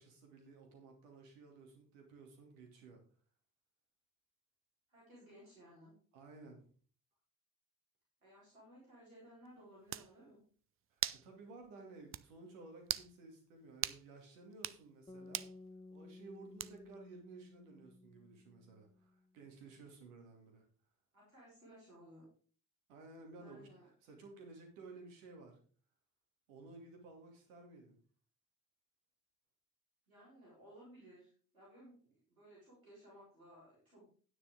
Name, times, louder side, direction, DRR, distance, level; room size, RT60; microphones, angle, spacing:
voice 1, 0.0-3.0 6.1-6.6 10.9-15.4 15.9-20.7 22.9-25.6 26.5-28.0, right 3 dB, 70° right, 3 dB, 2.4 m, -55 dB
voice 2, 4.9-5.9 8.2-10.4 21.1-22.2 23.4-23.9 30.1-34.1, equal, 85° right, -8 dB, 3.7 m, -59 dB
sound 1, 9.5-9.6 9.9-10.1 11.0-11.3 11.6-11.7 12.1-12.3 12.8-13.1 13.8-14.0 14.5-14.8 15.3-15.5 16.6-16.9, right 11 dB, 35° right, 0.5 m, -39 dB
sound 2, 15.1-19.3, left 2 dB, 10° left, 0.9 m, -56 dB
9.7 x 9.6 x 3.7 m, 0.43 s
figure-of-eight pair, 40°, 40 cm